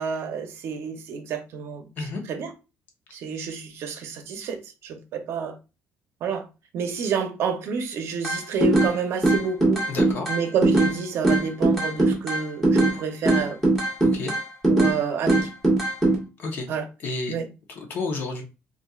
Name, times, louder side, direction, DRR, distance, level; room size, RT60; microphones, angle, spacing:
voice 1, 0.0-1.9 2.3-2.5 3.1-4.6 4.8-5.5 6.2-6.4 6.7-9.8 10.3-13.6 14.7-15.5 16.7-16.8 17.3-17.5, right 6 dB, 60° right, 0.7 m, -29 dB
sound 1, 8.2-8.9 9.2-10.9 11.2-13.0 13.3-15.0 15.3-16.2, right 2 dB, 5° left, 1.2 m, -20 dB
voice 2, 9.9-10.3 14.0-14.3 16.4-16.7 17.0-17.3 17.7-18.4, left 3 dB, 45° left, 0.8 m, -30 dB
4.1 x 2.6 x 2.3 m
cardioid pair, 175°, 5 cm